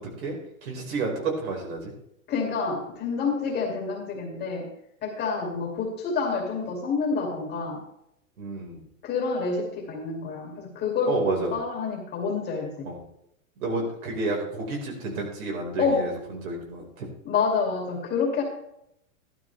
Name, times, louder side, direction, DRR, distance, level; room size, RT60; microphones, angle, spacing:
voice 1, 0.6-1.9 8.4-8.8 11.1-11.5 12.8-13.0 13.6-17.1, right 3 dB, 75° right, 0 dB, 5.1 m, -30 dB
voice 2, 2.3-4.7 5.0-7.8 9.0-12.9 15.8-16.1 17.2-18.4, left 5 dB, 25° left, 0 dB, 2.5 m, -28 dB
13.5 x 12.0 x 3.4 m, 0.78 s
supercardioid pair, 155°, 42 cm